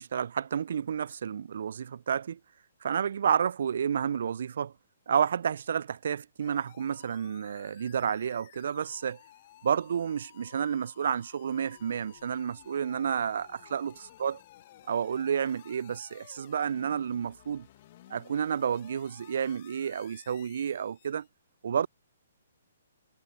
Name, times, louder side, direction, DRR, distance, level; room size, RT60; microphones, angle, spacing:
voice 1, 0.0-2.4 2.8-4.7 5.1-9.2 9.6-13.9 14.2-14.4 14.9-17.7 18.1-21.3 21.6-21.9, right 8 dB, 60° right, 0.3 m, -30 dB
sound 1, 6.4-21.3, left 14 dB, 45° left, 1.1 m, -56 dB
figure-of-eight pair, 130°, 0 cm